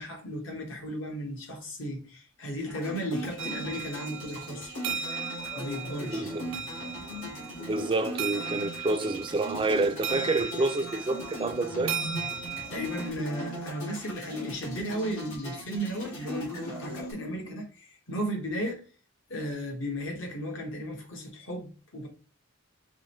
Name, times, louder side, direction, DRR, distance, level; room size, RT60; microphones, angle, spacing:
voice 1, 0.0-4.7 5.5-6.3 12.7-18.8 19.3-22.1, equal, 65° left, 1.3 m, -35 dB
sound 1, 2.7-17.1, equal, 85° left, 2.2 m, -39 dB
sound 2, 3.4-13.1, right 6 dB, 65° right, 0.7 m, -37 dB
voice 2, 6.0-6.5 7.6-12.0, right 2 dB, 25° right, 0.4 m, -28 dB
5.2 x 3.1 x 3.0 m
head